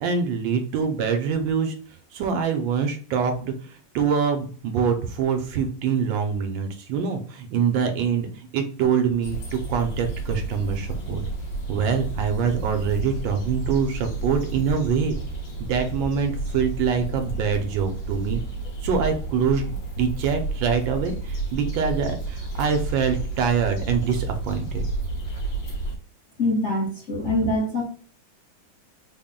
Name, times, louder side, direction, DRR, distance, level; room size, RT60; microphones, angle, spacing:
voice 1, 0.0-1.8 2.1-11.2 11.7-15.2 15.6-18.4 18.8-24.9, right 6 dB, 75° right, 6 dB, 1.3 m, -25 dB
sound 1, 9.2-26.0, right 3 dB, 70° left, 1.9 m, -31 dB
voice 2, 26.4-27.8, left 2 dB, 50° left, -5 dB, 0.9 m, -24 dB
4.1 x 2.1 x 3.6 m, 0.44 s
omnidirectional pair, 2.2 m